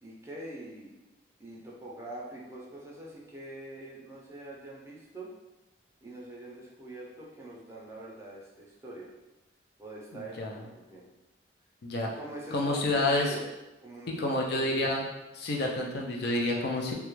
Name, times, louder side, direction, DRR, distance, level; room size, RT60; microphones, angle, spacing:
voice 1, 0.0-0.9 1.4-5.3 6.0-9.1 9.8-11.1 12.1-13.4 13.8-14.9 16.4-16.5, right 1 dB, 15° right, -4 dB, 0.4 m, -43 dB
voice 2, 10.1-10.6 11.8-12.1 12.5-13.3 14.1-15.1 15.3-16.9, left 2 dB, 60° left, -1 dB, 0.4 m, -29 dB
2.3 x 2.1 x 3.0 m, 1.0 s
head